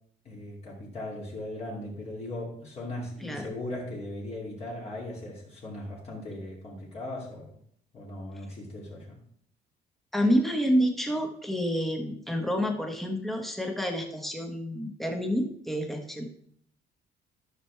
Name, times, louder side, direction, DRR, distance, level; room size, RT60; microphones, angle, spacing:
voice 1, 0.2-7.6 7.9-9.2, left 1 dB, 35° left, -3 dB, 2.6 m, -38 dB
voice 2, 10.1-16.2, equal, ahead, 3 dB, 1.3 m, -28 dB
12.5 x 6.1 x 3.4 m, 0.64 s
cardioid pair, 155°, 18 cm